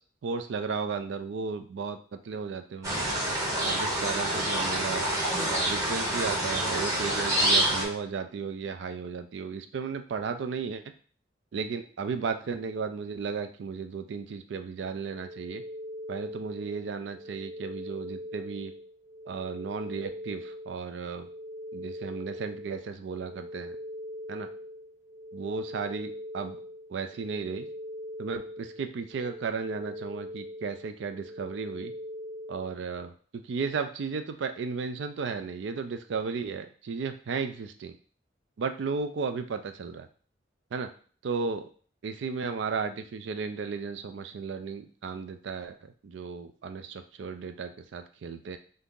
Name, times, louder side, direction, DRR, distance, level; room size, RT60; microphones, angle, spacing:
voice 1, 0.2-3.1 3.6-5.1 5.5-10.8 11.5-15.6 16.1-18.7 19.3-21.3 21.7-23.8 24.3-24.5 25.3-26.6 26.9-27.7 28.2-31.9 32.5-37.9 38.6-40.1 40.7-40.9 41.2-41.7 42.0-48.6, right 5 dB, 70° right, 8 dB, 0.3 m, -34 dB
sound 1, 2.8-7.8, right 1 dB, 20° right, 0.9 m, -27 dB
sound 2, 15.0-32.8, equal, 50° right, 1.4 m, -41 dB
2.7 x 2.5 x 3.6 m, 0.42 s
head